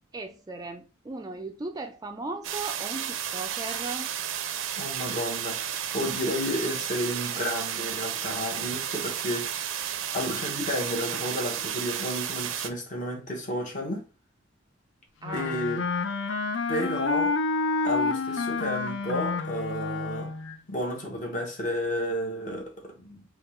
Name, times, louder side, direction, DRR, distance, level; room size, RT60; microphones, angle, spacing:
voice 1, 0.1-4.1 15.2-15.6, right 3 dB, 20° right, 0.3 m, -37 dB
sound 1, 2.4-12.7, right 9 dB, 85° right, 0.5 m, -32 dB
voice 2, 4.8-9.7 10.1-14.1 15.3-15.8 16.7-17.3 17.8-20.3 20.7-23.2, equal, 40° left, 1.2 m, -32 dB
Wind instrument woodwind instrument, 15.2-20.6, left 4 dB, 65° left, 0.5 m, -29 dB
3.5 x 2.4 x 4.3 m
head